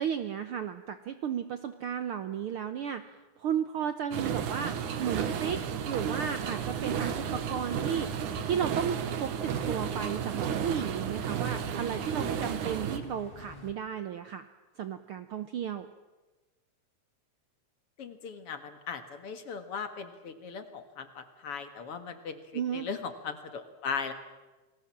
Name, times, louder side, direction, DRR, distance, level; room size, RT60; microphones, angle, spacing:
voice 1, 0.0-3.0 3.4-8.1 8.4-14.5 14.8-15.9 22.5-22.9, right 8 dB, 70° right, 10 dB, 1.4 m, -34 dB
sound 1, 4.1-13.0, right 7 dB, 90° right, 3.0 m, -33 dB
sound 2, 5.3-13.7, left 1 dB, 20° left, 2.2 m, -50 dB
voice 2, 18.0-24.1, left 6 dB, 55° left, 8 dB, 2.3 m, -38 dB
29.0 x 20.0 x 7.4 m, 1.2 s
omnidirectional pair, 3.4 m